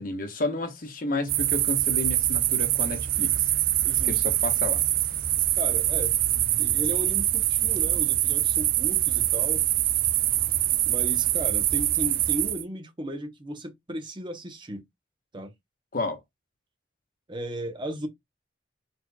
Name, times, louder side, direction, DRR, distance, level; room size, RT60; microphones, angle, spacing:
voice 1, 0.0-3.3 4.0-4.8 15.9-16.2, left 2 dB, 50° left, 1.1 m, -31 dB
sound 1, 1.3-12.6, right 13 dB, 50° right, 0.4 m, -24 dB
voice 2, 3.8-4.2 5.6-6.1 6.6-9.6 10.9-14.8 15.3-15.5 17.3-18.1, equal, 25° right, 0.9 m, -35 dB
4.5 x 4.2 x 2.2 m
head